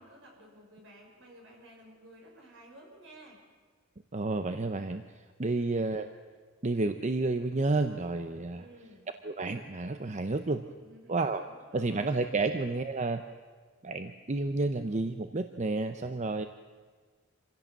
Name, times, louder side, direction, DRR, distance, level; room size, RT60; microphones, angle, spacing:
voice 1, 0.0-3.4 8.5-9.1 10.3-11.1 11.4-12.1, right 1 dB, 65° right, 0 dB, 6.1 m, -54 dB
voice 2, 4.1-5.0 5.4-6.1 6.6-8.6 9.2-10.6 11.1-11.4 11.7-13.2 13.8-16.5, right 3 dB, 35° right, 8 dB, 0.8 m, -30 dB
26.0 x 16.0 x 7.5 m, 1.5 s
head